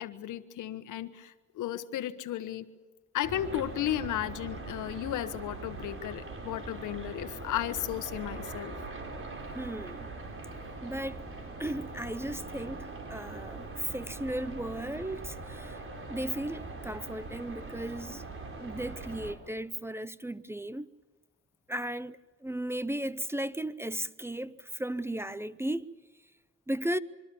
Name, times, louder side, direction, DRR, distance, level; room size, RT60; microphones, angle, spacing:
voice 1, 0.0-2.6 3.1-8.7, left 12 dB, 85° left, 1.3 m, -34 dB
sound 1, 3.2-19.3, right 3 dB, 45° right, 4.9 m, -42 dB
voice 2, 9.5-10.1 10.8-11.3 11.6-15.8 16.1-18.2 18.6-20.9 21.7-25.9 26.7-27.0, right 1 dB, 10° right, 0.7 m, -35 dB
sound 2, 10.4-17.0, equal, 15° left, 3.1 m, -57 dB
25.5 x 23.5 x 7.0 m
cardioid pair, 90°, 30 cm